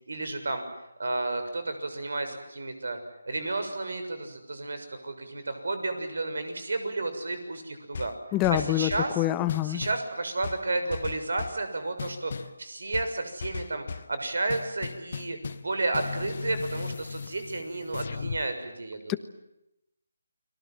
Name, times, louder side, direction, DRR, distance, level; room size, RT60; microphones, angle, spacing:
voice 1, 0.1-0.6 1.0-3.0 3.3-8.2 8.5-9.2 9.6-19.2, right 2 dB, 70° right, 9 dB, 6.7 m, -32 dB
sound 1, 7.9-9.2 9.5-10.1 10.4-11.6 12.0-12.6 12.9-14.1 14.5-15.7 15.9-18.4, left 5 dB, 50° left, 1.2 m, -37 dB
voice 2, 8.3-8.9 9.2-9.8 19.1-19.2, left 15 dB, 15° left, 12 dB, 1.2 m, -25 dB
30.0 x 23.0 x 7.8 m, 0.88 s
figure-of-eight pair, 160°, 0 cm